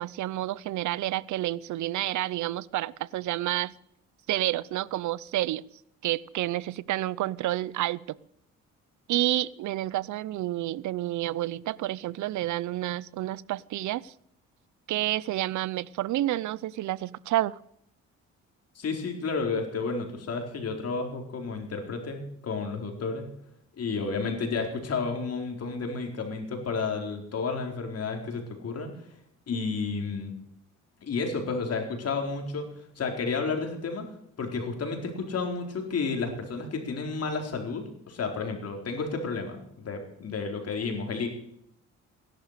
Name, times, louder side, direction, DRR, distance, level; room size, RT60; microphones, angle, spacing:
voice 1, 0.0-3.7 4.3-5.6 6.0-8.2 9.1-14.1 14.9-17.6, right 15 dB, 75° right, 22 dB, 0.6 m, -29 dB
voice 2, 18.7-23.3 23.8-29.1 29.5-30.3 31.0-32.7 33.0-34.1 34.4-41.3, left 4 dB, 55° left, 3 dB, 4.3 m, -31 dB
16.5 x 11.5 x 6.7 m, 0.71 s
cardioid pair, 90°, 30 cm